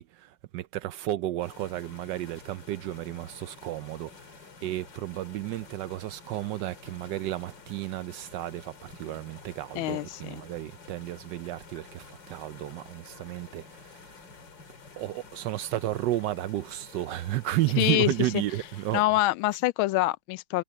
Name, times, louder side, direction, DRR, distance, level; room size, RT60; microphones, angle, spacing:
voice 1, 0.0-14.2 15.0-19.0, right 15 dB, 80° right, 1.0 m, -32 dB
sound 1, 1.4-19.0, left 4 dB, 55° left, 3.2 m, -50 dB
voice 2, 9.7-10.4 17.8-18.1 18.9-20.6, left 17 dB, 75° left, 1.3 m, -25 dB
omnidirectional pair, 2.4 m